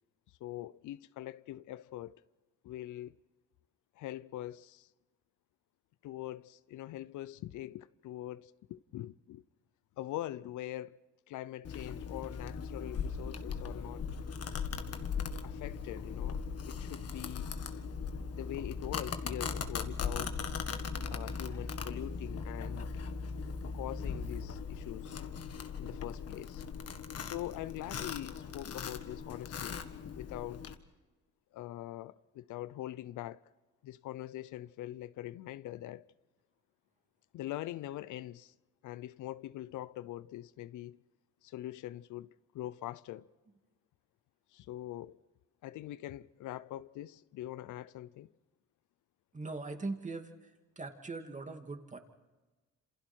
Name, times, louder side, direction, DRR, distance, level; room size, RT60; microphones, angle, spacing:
voice 1, 0.4-2.2 2.6-3.2 4.0-4.9 6.0-9.4 10.0-11.0 11.3-14.1 15.4-17.5 18.3-20.4 21.1-22.9 23.7-25.2 25.8-26.6 27.2-29.9 30.1-30.6 31.5-33.4 33.8-36.0 37.3-38.5 38.8-41.0 41.4-43.3 44.5-45.2 45.6-48.3, left 14 dB, 80° left, 0.6 m, -43 dB
Domestic sounds home sounds, 11.6-30.7, left 5 dB, 55° left, 1.7 m, -39 dB
voice 2, 49.3-50.5 50.8-52.0, right 3 dB, 25° right, 2.5 m, -40 dB
27.5 x 27.5 x 4.5 m
cardioid pair, 90°, 30 cm